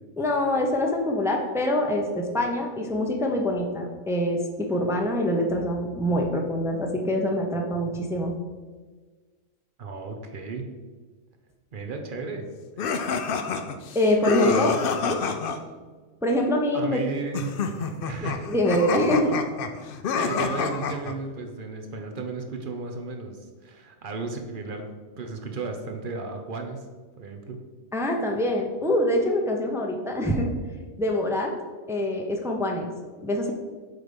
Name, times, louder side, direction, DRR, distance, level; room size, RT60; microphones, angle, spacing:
voice 1, 0.2-8.4 13.9-14.7 15.0-15.2 16.2-17.0 18.2-19.3 27.9-30.5 31.0-31.5 31.9-32.9 33.2-33.5, left 1 dB, 5° right, 1 dB, 0.3 m, -25 dB
voice 2, 9.8-10.7 11.7-12.4 14.4-14.8 16.7-17.5 18.1-18.5 19.0-19.2 20.1-24.9 25.2-26.8 27.2-27.6, right 4 dB, 50° right, 4 dB, 0.8 m, -34 dB
sound 1, 12.8-15.6 17.3-21.1, left 5 dB, 60° left, 0.6 m, -28 dB
7.8 x 3.3 x 5.2 m, 1.4 s
omnidirectional pair, 1.4 m